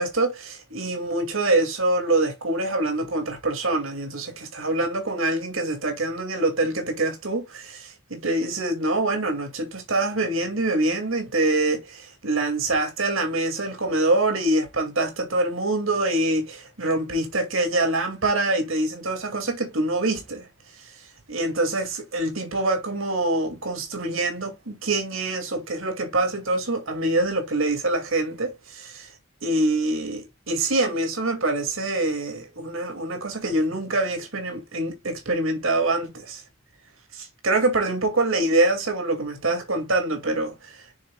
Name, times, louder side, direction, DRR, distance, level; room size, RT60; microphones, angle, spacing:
voice 1, 0.0-20.5 21.3-29.1 29.4-36.4 37.1-40.8, right 2 dB, 85° right, 2.3 m, -25 dB
7.2 x 6.3 x 2.3 m
head